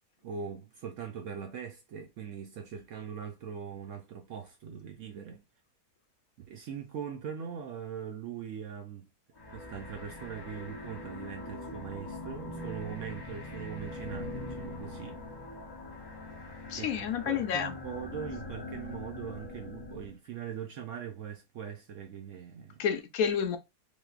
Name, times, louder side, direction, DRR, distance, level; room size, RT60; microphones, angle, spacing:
voice 1, 0.2-5.4 6.4-9.1 9.5-15.2 16.8-22.8, right 7 dB, 70° right, 0.7 m, -41 dB
sound 1, 9.4-20.1, left 2 dB, 40° left, 0.3 m, -42 dB
voice 2, 16.7-17.7 22.8-23.6, left 7 dB, 70° left, 1.0 m, -29 dB
3.4 x 3.0 x 2.4 m
omnidirectional pair, 1.7 m